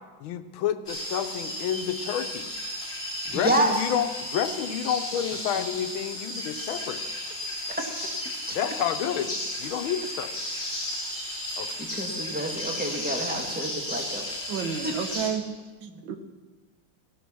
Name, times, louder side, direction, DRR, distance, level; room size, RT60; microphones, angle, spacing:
voice 1, 0.2-2.5 3.2-7.2 8.5-10.5 11.6-11.8, left 9 dB, 85° left, 10 dB, 1.6 m, -30 dB
sound 1, 0.9-15.3, left 1 dB, 30° left, 3.9 m, -34 dB
voice 2, 3.3-3.7 7.8-7.9 8.4-8.6 11.8-14.2 14.8-15.0 15.9-16.0, right 1 dB, 5° right, 1 dB, 1.6 m, -28 dB
voice 3, 14.5-15.4 15.8-16.2, right 7 dB, 70° right, 7 dB, 1.8 m, -31 dB
16.0 x 12.5 x 6.2 m, 1.3 s
omnidirectional pair, 2.2 m